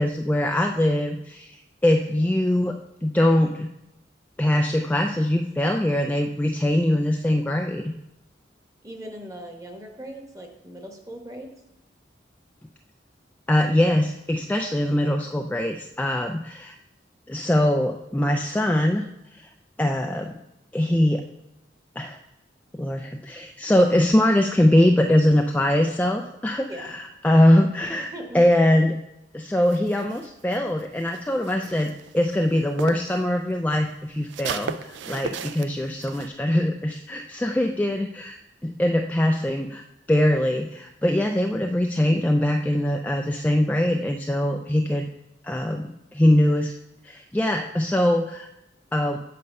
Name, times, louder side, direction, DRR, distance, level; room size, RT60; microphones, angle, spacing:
voice 1, 0.0-2.8 3.0-3.7 4.4-7.9 13.5-16.8 17.3-19.1 19.3-19.5 19.8-20.3 20.7-21.3 22.0-22.2 22.7-29.0 29.3-38.4 38.6-45.1 45.4-46.8 47.0-48.5 48.9-49.2, left 1 dB, 10° left, 3 dB, 0.3 m, -22 dB
voice 2, 8.8-11.5 23.7-23.8 26.7-26.9 28.1-28.4, right 1 dB, 20° right, 3 dB, 1.1 m, -39 dB
sound 1, 29.6-33.2 33.5-36.3, right 6 dB, 85° right, 0.4 m, -36 dB
8.5 x 5.4 x 5.3 m, 0.89 s
head